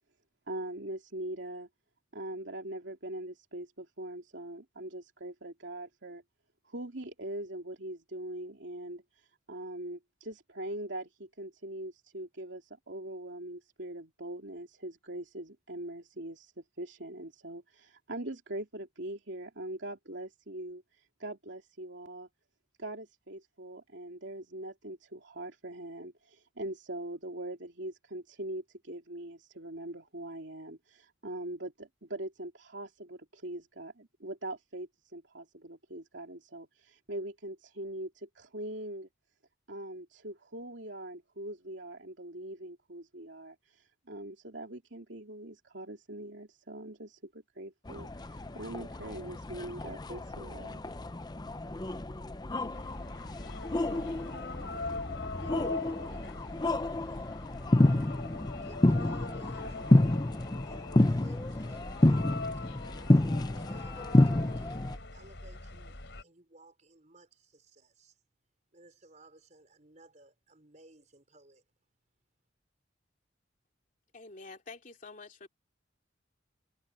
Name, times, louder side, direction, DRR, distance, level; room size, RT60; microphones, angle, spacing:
voice 1, 0.5-1.7 2.1-6.2 6.6-16.5 16.8-20.8 21.2-22.3 22.8-39.1 39.7-50.8, right 1 dB, 70° right, 3.0 m, -42 dB
sound 1, 47.9-65.0, left 1 dB, 20° left, 0.6 m, -29 dB
sound 2, 52.7-66.2, left 3 dB, 70° left, 3.4 m, -42 dB
voice 2, 53.6-55.0 55.4-57.5 57.9-58.2 58.5-60.3 60.6-63.2 63.5-64.8 65.1-68.1 68.7-71.6, right 2 dB, 40° right, 5.2 m, -60 dB
voice 3, 74.1-75.5, left 3 dB, 45° left, 3.0 m, -48 dB
head